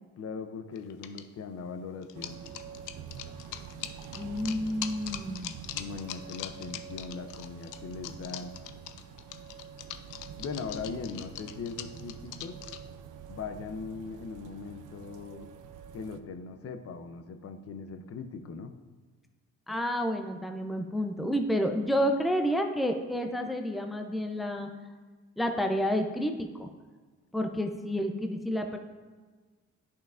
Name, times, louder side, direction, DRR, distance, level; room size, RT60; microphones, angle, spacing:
voice 1, 0.2-2.4 5.7-8.5 10.4-12.5 13.3-15.5 15.9-18.7, left 5 dB, 50° left, 8 dB, 0.7 m, -40 dB
sound 1, 0.8-1.2 2.0-12.8, left 12 dB, 90° left, 0.5 m, -41 dB
sound 2, 2.1-16.2, right 7 dB, 85° right, 0.6 m, -46 dB
voice 2, 4.1-5.5 19.7-24.7 25.4-26.7 27.3-28.8, equal, ahead, 5 dB, 0.6 m, -30 dB
10.5 x 5.7 x 2.5 m, 1.4 s
cardioid pair, 90°, 30 cm